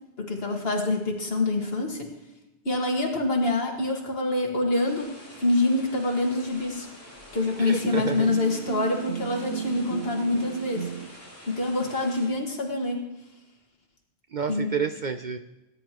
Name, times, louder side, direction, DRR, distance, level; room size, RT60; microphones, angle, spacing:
voice 1, 0.2-2.1 2.7-6.9 7.3-10.9 11.5-13.1 14.5-14.7, left 2 dB, 60° left, 1 dB, 2.0 m, -26 dB
sound 1, 4.8-12.3, left 1 dB, 15° left, 4.8 m, -47 dB
voice 2, 7.6-8.3 14.3-15.4, right 6 dB, 55° right, 7 dB, 0.6 m, -29 dB
sound 2, 7.8-11.1, right 9 dB, 85° right, 1.0 m, -34 dB
17.5 x 10.0 x 3.0 m, 0.98 s
omnidirectional pair, 1.1 m